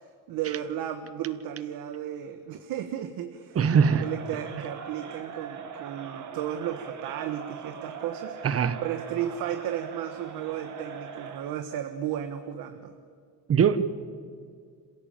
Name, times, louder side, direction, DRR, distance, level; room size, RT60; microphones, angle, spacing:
voice 1, 0.3-3.6 4.0-8.4 8.8-12.9, right 10 dB, 75° right, 7 dB, 1.4 m, -34 dB
voice 2, 3.5-4.0 8.4-8.8 13.5-13.8, right 7 dB, 40° right, 13 dB, 1.2 m, -21 dB
Crowd, 3.5-11.6, right 6 dB, 55° right, 2.2 m, -41 dB
27.0 x 16.0 x 8.9 m, 2.2 s
cardioid pair, 120°, 36 cm